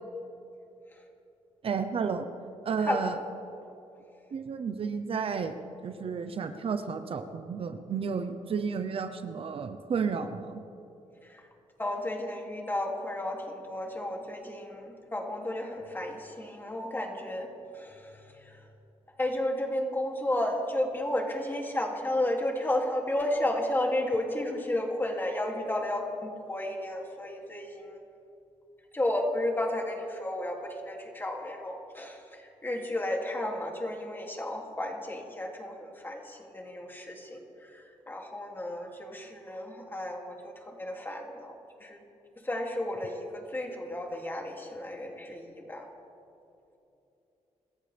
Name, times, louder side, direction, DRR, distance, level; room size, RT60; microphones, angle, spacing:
voice 1, 1.6-2.3 2.6-3.1 4.3-5.5 5.8-10.6, right 6 dB, 55° right, 8 dB, 0.9 m, -32 dB
voice 2, 2.8-3.1 11.2-11.5 11.8-18.7 19.2-28.0 28.9-42.0 42.4-45.9, left 1 dB, 15° left, 0 dB, 2.8 m, -33 dB
26.5 x 14.5 x 3.5 m, 2.9 s
cardioid pair, 110°, 12 cm